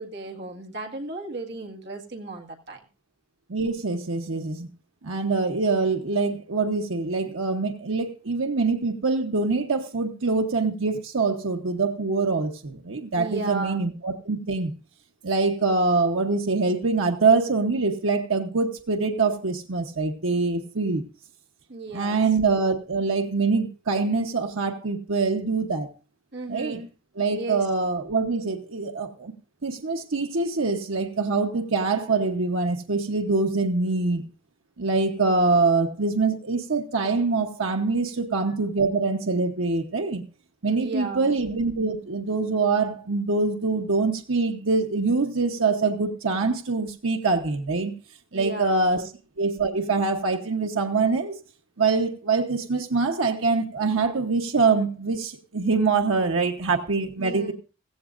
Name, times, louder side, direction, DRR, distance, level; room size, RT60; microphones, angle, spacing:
voice 1, 0.0-2.8 13.1-13.8 21.7-22.2 26.3-26.9 27.3-27.7 40.7-41.3 48.3-49.1 57.2-57.5, right 3 dB, 60° right, 2 dB, 1.8 m, -35 dB
voice 2, 3.5-4.7 5.0-14.7 15.2-21.0 21.9-25.9 26.5-26.8 27.1-29.3 29.6-34.2 34.8-40.2 40.6-47.9 48.3-49.0 49.4-51.3 51.8-57.5, right 4 dB, 85° right, 3 dB, 1.0 m, -24 dB
16.0 x 15.5 x 2.5 m, 0.34 s
head